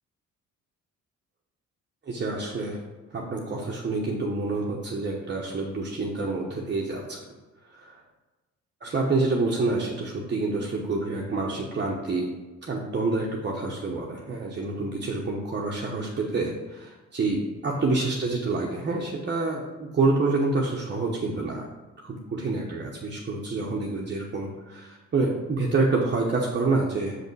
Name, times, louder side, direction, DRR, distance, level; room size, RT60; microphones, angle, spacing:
voice 1, 2.0-2.8 3.1-7.2 7.7-8.0 8.8-12.3 12.6-21.7 22.0-27.2, right 3 dB, 35° right, -2 dB, 1.0 m, -27 dB
5.9 x 5.5 x 4.7 m, 1.2 s
cardioid pair, 90°, 30 cm